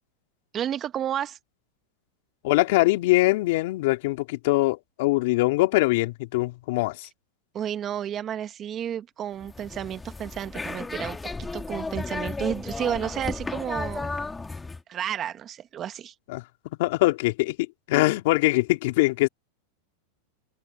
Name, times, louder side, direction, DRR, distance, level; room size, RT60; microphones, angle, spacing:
voice 1, 0.5-1.4 7.5-14.1 14.9-16.1, right 10 dB, 30° right, 1.6 m, -31 dB
voice 2, 2.4-7.1 16.3-16.4 16.8-17.6 17.9-19.3, left 20 dB, 65° left, 2.8 m, -22 dB
sound 1, 9.4-14.8, left 3 dB, 10° left, 2.6 m, -34 dB
hypercardioid pair, 120°, 0 cm